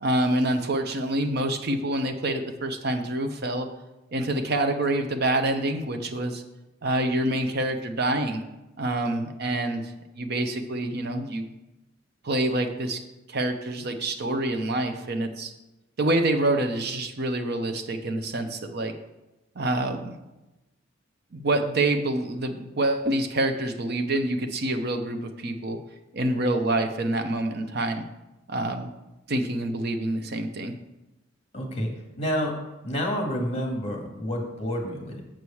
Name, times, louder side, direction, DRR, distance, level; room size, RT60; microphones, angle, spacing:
voice 1, 0.0-3.7 4.1-6.4 6.8-8.4 8.8-9.8 10.1-11.5 12.2-13.0 13.3-15.5 16.0-18.9 19.6-20.1 21.3-25.8 26.1-28.0 28.5-28.9 29.3-30.7, right 1 dB, 55° right, 6 dB, 0.8 m, -26 dB
voice 2, 31.5-31.9 32.2-32.6 32.8-35.2, equal, 30° left, 1 dB, 1.9 m, -29 dB
7.5 x 4.7 x 7.0 m, 1.0 s
head